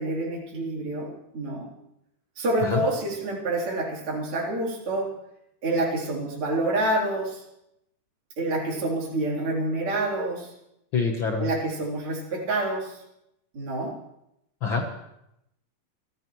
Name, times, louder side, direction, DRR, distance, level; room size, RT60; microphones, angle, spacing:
voice 1, 0.0-1.7 2.4-5.1 5.6-7.4 8.4-10.5 11.4-13.0 13.5-13.9, right 2 dB, 40° right, -4 dB, 4.3 m, -27 dB
voice 2, 10.9-11.5 14.6-15.0, left 5 dB, 55° left, 2 dB, 1.4 m, -26 dB
26.5 x 14.5 x 3.1 m, 0.82 s
omnidirectional pair, 3.8 m